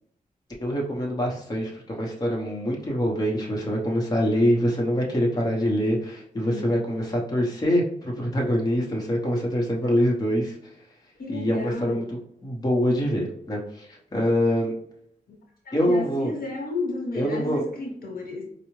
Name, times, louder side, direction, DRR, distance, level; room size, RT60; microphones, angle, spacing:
voice 1, 0.6-10.6 11.3-14.7 15.7-16.3 17.1-17.6, equal, 25° left, -3 dB, 0.8 m, -25 dB
voice 2, 6.4-6.8 11.2-12.1 15.3-15.4 15.6-18.4, left 2 dB, 80° left, 0 dB, 1.0 m, -33 dB
4.5 x 2.0 x 3.0 m, 0.69 s
wide cardioid pair, 135°, 15 cm